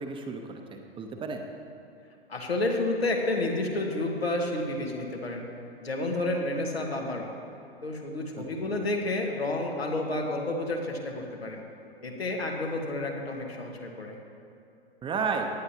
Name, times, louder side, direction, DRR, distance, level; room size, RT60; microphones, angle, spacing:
voice 1, 0.0-1.4 8.4-8.8 15.0-15.5, right 5 dB, 15° right, 4 dB, 0.8 m, -33 dB
voice 2, 2.3-5.5 5.8-7.3 7.8-11.7 12.0-14.2, left 2 dB, 85° left, 1 dB, 1.7 m, -30 dB
17.5 x 9.8 x 2.9 m, 2.5 s
figure-of-eight pair, 105°, 30 cm